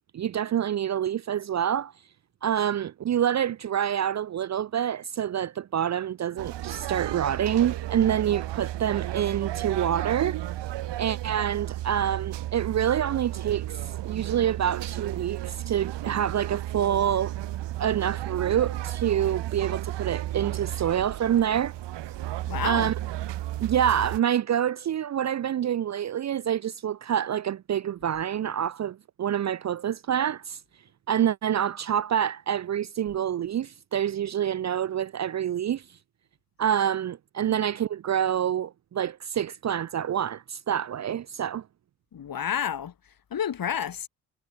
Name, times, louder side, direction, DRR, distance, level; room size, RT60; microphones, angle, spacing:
voice 1, 0.1-1.9 2.4-10.4 11.0-17.3 17.8-21.7 22.6-22.9 23.6-30.6 31.1-35.8 36.6-41.6, right 9 dB, 35° right, 0.8 m, -27 dB
sound 1, 6.4-24.2, right 14 dB, 55° right, 3.6 m, -33 dB
voice 2, 22.5-22.9 42.1-42.9 43.3-44.1, left 8 dB, 45° left, 4.5 m, -30 dB
figure-of-eight pair, 50°, 50 cm